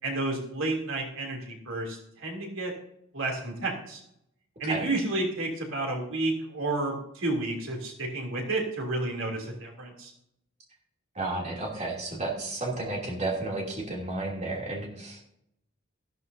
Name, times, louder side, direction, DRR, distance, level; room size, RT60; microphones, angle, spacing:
voice 1, 0.0-2.7 3.1-4.0 4.6-10.1, right 2 dB, 75° right, 0 dB, 3.0 m, -31 dB
voice 2, 11.1-15.2, right 2 dB, 35° right, -2 dB, 2.9 m, -32 dB
15.0 x 12.5 x 2.7 m, 0.75 s
head